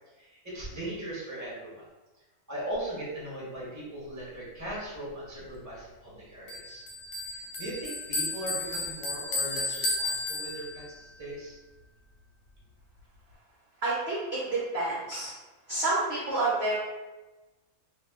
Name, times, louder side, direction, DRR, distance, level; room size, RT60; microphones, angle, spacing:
voice 1, 0.2-1.8 2.5-6.8 7.2-11.6, right 1 dB, 15° right, -7 dB, 0.9 m, -39 dB
Bell, 6.5-11.0, left 2 dB, 80° left, 1.2 m, -33 dB
voice 2, 13.8-15.3 15.7-16.8, right 2 dB, 55° right, -6 dB, 0.7 m, -29 dB
2.6 x 2.2 x 3.5 m, 1.1 s
omnidirectional pair, 1.7 m